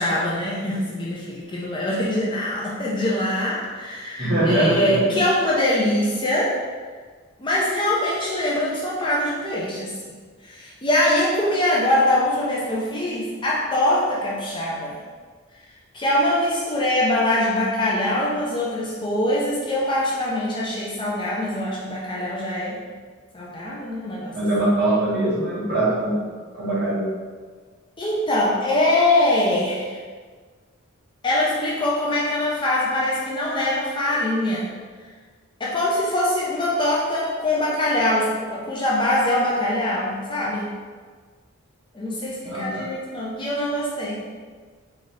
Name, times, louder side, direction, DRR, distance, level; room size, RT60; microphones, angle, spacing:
voice 1, 0.0-6.6 7.4-10.0 10.4-15.0 15.9-22.8 23.3-24.3 28.0-30.0 31.2-34.7 35.6-40.7 41.9-44.2, left 1 dB, 20° left, -5 dB, 0.5 m, -23 dB
voice 2, 4.2-5.2 24.3-26.2 26.5-27.1 42.4-42.9, right 1 dB, 45° right, -9 dB, 1.5 m, -22 dB
3.7 x 2.7 x 3.2 m, 1.5 s
head